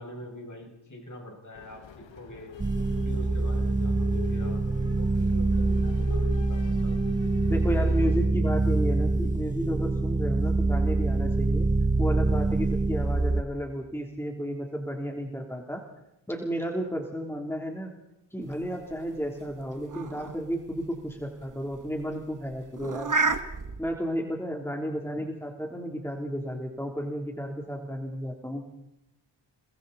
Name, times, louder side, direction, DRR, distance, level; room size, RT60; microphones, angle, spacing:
voice 1, 0.0-2.5 3.0-7.2, equal, 40° left, 0 dB, 7.1 m, -44 dB
sound 1, 1.5-8.3, left 7 dB, 75° left, 1.5 m, -44 dB
sound 2, 2.6-13.4, right 2 dB, 15° right, 0.8 m, -25 dB
voice 2, 7.5-11.7 12.0-15.8 16.3-17.9 18.3-23.1 23.8-28.6, equal, 5° left, 1 dB, 3.5 m, -32 dB
sound 3, 18.5-23.8, right 3 dB, 40° right, 1.7 m, -33 dB
29.5 x 20.5 x 4.3 m, 0.86 s
cardioid pair, 50°, 45 cm